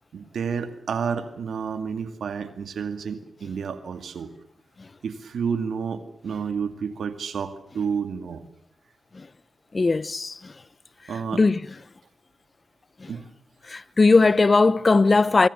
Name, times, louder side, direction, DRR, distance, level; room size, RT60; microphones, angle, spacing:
voice 1, 0.1-4.3 5.0-8.4 11.1-11.4 13.1-13.2, right 6 dB, 85° right, 2.2 m, -30 dB
voice 2, 9.7-10.5 11.3-11.6 13.0-13.1 13.7-15.5, left 3 dB, 45° left, 0.9 m, -19 dB
24.5 x 23.5 x 7.0 m
cardioid pair, 45°, 0 cm